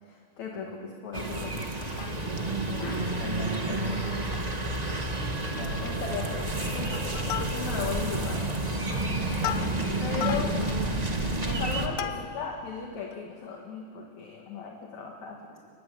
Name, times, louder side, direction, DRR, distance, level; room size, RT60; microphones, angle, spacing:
voice 1, 0.0-1.9 2.8-3.1 5.8-6.9 7.3-8.5 10.0-10.5 11.4-15.4, left 5 dB, 55° left, 0 dB, 3.3 m, -37 dB
sound 1, 1.1-11.9, right 2 dB, 30° right, 0.7 m, -30 dB
Plucked string instrument, 1.8-2.6 3.0-3.1 3.3-3.6 4.0-4.7 5.0-5.1 5.4-5.8 6.2-6.5 6.9-8.0 8.5-12.6 13.1-13.2, left 11 dB, 75° left, 2.5 m, -38 dB
voice 2, 2.4-4.1 5.5-5.9, right 1 dB, 15° left, -2 dB, 8.1 m, -37 dB
Wind instrument woodwind instrument, 2.9-8.0, right 2 dB, 80° right, 5.7 m, -49 dB
30.0 x 21.0 x 8.7 m, 2.1 s
omnidirectional pair, 4.2 m